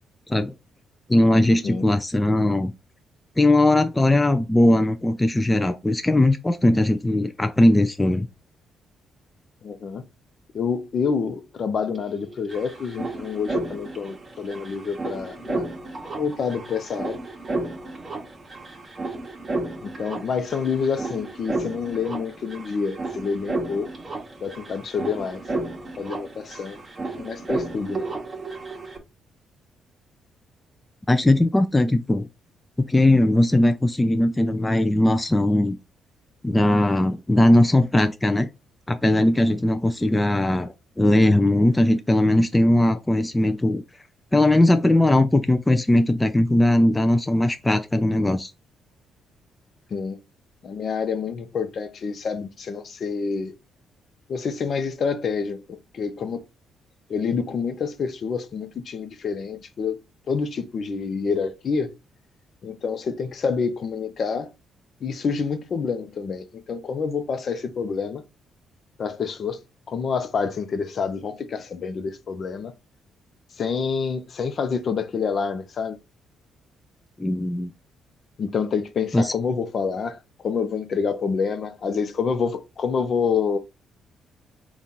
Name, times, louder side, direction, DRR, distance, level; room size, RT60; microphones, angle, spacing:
voice 1, 1.1-2.7 3.4-8.3 31.1-32.3 32.8-35.8 36.4-38.5 38.9-43.8 44.3-48.5 77.2-77.7 79.1-79.3, left 1 dB, 15° left, 0.4 m, -19 dB
voice 2, 9.6-10.0 10.5-15.6 16.2-17.2 19.8-23.9 24.4-25.4 26.0-26.8 27.2-28.1 49.9-50.2 50.6-53.5 54.3-56.4 57.1-60.0 60.3-62.0 62.6-64.5 65.0-68.2 69.0-69.6 69.9-72.7 73.6-76.0 78.4-80.2 80.4-83.6, left 5 dB, 50° left, 0.6 m, -27 dB
sound 1, 11.9-12.0 12.2-29.0, right 2 dB, 30° right, 1.1 m, -33 dB
3.7 x 2.4 x 4.2 m
cardioid pair, 90°, 0 cm